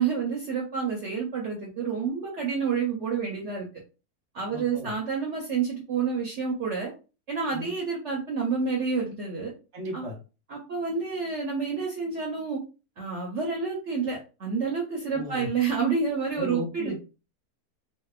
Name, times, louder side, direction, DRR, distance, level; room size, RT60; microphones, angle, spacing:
voice 1, 0.0-3.7 4.3-6.9 7.3-9.5 9.9-10.0 10.5-12.6 13.0-16.9, right 5 dB, 60° right, -1 dB, 0.8 m, -29 dB
voice 2, 4.4-4.9 7.5-7.7 9.7-10.2 15.0-15.5 16.3-17.0, left 1 dB, 30° right, 0 dB, 0.6 m, -36 dB
2.8 x 2.0 x 2.3 m, 0.32 s
omnidirectional pair, 1.6 m